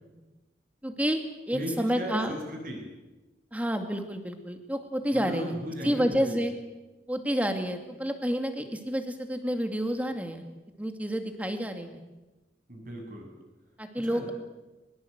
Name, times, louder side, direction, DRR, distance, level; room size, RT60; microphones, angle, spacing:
voice 1, 0.8-2.4 3.5-5.6 5.8-6.5 7.1-10.4 10.8-12.0 13.8-14.3, equal, 10° right, 6 dB, 2.3 m, -29 dB
voice 2, 1.5-2.8 5.1-6.4 12.7-13.3 14.0-14.3, equal, 50° right, 2 dB, 7.9 m, -36 dB
22.5 x 22.0 x 8.1 m, 1.1 s
head